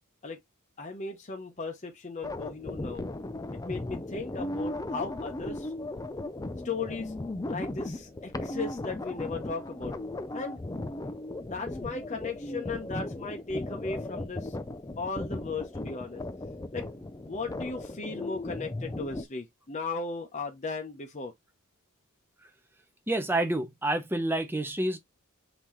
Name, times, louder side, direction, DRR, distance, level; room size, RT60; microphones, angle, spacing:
voice 1, 0.8-3.0 3.6-5.7 6.6-7.1 7.5-10.0 10.3-10.6 11.5-14.6 15.0-16.2 16.7-16.9 17.3-21.3, left 4 dB, 35° left, 0.8 m, -36 dB
sound 1, 2.2-19.3, left 1 dB, 15° left, 0.4 m, -37 dB
voice 2, 23.1-25.0, right 1 dB, 10° right, 0.7 m, -28 dB
5.6 x 2.9 x 3.1 m
head